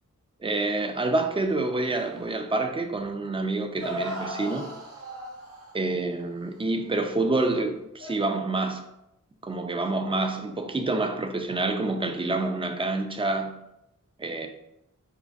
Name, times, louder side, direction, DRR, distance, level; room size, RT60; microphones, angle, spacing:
voice 1, 0.4-4.7 5.7-8.8 9.4-13.5 14.2-14.5, right 2 dB, 15° right, 0.4 m, -27 dB
sound 1, 1.9-2.4 3.0-3.1 3.8-5.9 8.0-8.2, equal, 45° right, 0.8 m, -36 dB
5.1 x 2.5 x 2.4 m
wide cardioid pair, 75°, 31 cm